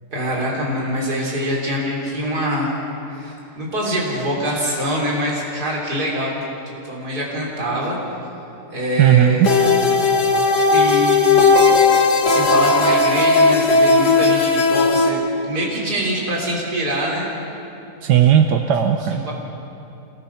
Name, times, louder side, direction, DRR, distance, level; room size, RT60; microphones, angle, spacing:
voice 1, 0.1-2.7 3.1-6.3 6.7-8.0 8.7-9.5 10.7-11.6 12.2-17.3 19.1-19.3, equal, 70° right, -3 dB, 3.9 m, -24 dB
voice 2, 9.0-9.5 18.0-19.3, right 10 dB, 90° right, 5 dB, 1.5 m, -15 dB
sound 1, 9.4-15.1, left 3 dB, 90° left, 2.1 m, -15 dB
26.5 x 21.0 x 5.9 m, 2.9 s
omnidirectional pair, 1.8 m